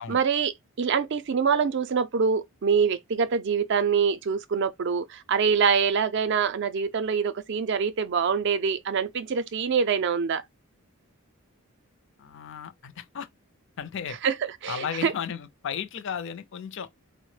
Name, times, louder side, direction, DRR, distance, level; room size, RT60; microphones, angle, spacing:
voice 1, 0.0-10.4 14.2-15.1, right 6 dB, 50° right, 0.4 m, -25 dB
voice 2, 12.2-13.3 13.8-14.2 14.7-16.9, left 7 dB, 55° left, 0.4 m, -34 dB
4.2 x 2.0 x 3.2 m
head